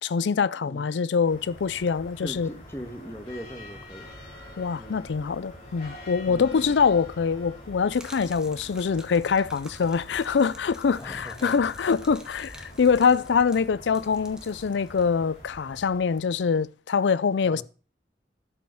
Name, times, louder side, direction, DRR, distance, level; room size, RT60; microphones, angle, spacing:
voice 1, 0.0-2.5 4.6-17.6, left 5 dB, 80° left, 0.4 m, -24 dB
sound 1, 1.2-16.7, left 1 dB, 40° left, 5.8 m, -46 dB
voice 2, 2.2-4.1 4.7-5.1 6.3-6.8 11.0-11.6 17.4-17.6, equal, 15° left, 1.5 m, -40 dB
Gurgling / Liquid, 7.9-15.5, right 1 dB, 5° right, 1.3 m, -51 dB
12.0 x 5.5 x 6.4 m
head